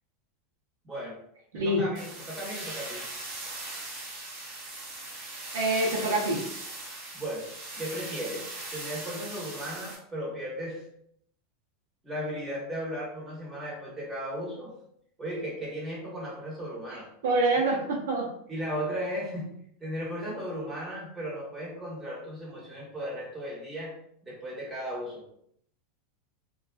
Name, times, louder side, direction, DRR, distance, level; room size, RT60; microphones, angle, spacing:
voice 1, 0.8-1.2 1.5-3.0 7.1-7.5 7.7-10.8 12.0-14.7 15.2-17.1 18.5-19.5 19.8-23.9 24.2-25.2, equal, 10° right, -6 dB, 1.2 m, -36 dB
voice 2, 1.5-1.8 5.5-6.4 17.2-18.3, right 2 dB, 85° right, -2 dB, 0.6 m, -25 dB
sound 1, 1.9-10.0, right 2 dB, 55° right, 1.2 m, -39 dB
2.3 x 2.3 x 2.3 m, 0.70 s
supercardioid pair, 125°, 0 cm